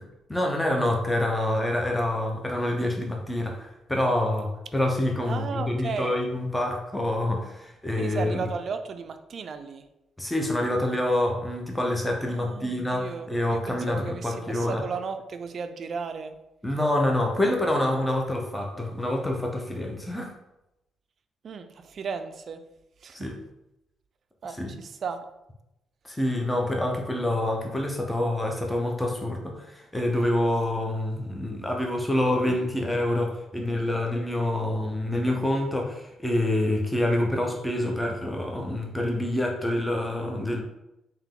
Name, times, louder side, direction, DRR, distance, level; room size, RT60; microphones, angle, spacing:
voice 1, 0.3-8.5 10.2-14.8 16.6-20.3 23.1-23.4 24.5-24.8 26.0-40.6, left 1 dB, 10° left, 1 dB, 0.7 m, -27 dB
voice 2, 5.3-6.1 8.0-9.8 12.3-16.3 21.4-22.6 23.0-23.3 24.4-25.2, right 5 dB, 55° right, 8 dB, 0.4 m, -35 dB
3.5 x 2.8 x 3.7 m, 0.89 s
cardioid pair, 90°, 0 cm